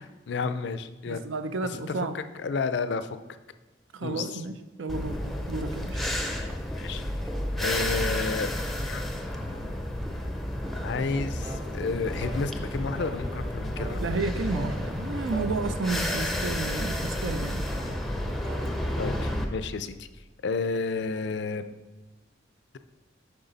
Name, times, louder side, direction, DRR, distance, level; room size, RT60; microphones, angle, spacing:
voice 1, 0.0-1.2 1.9-3.1 4.0-4.4 6.7-7.0 7.6-8.5 8.9-9.1 10.8-14.0 19.0-20.1 20.4-21.6, left 4 dB, 60° left, 11 dB, 0.4 m, -31 dB
voice 2, 1.1-2.2 3.9-4.5 4.8-5.2 5.5-6.0 14.0-17.7, right 3 dB, 75° right, 9 dB, 0.5 m, -31 dB
sound 1, 4.9-19.5, left 1 dB, ahead, 0.5 m, -31 dB
sound 2, 11.4-11.7 12.2-12.4 13.0-13.2 13.8-14.0 14.5-14.8 15.3-15.5 16.1-16.3 16.9-17.1 17.7-17.9 18.4-18.7 19.2-19.3, right 3 dB, 20° right, 0.9 m, -41 dB
8.1 x 5.6 x 4.0 m, 1.1 s
head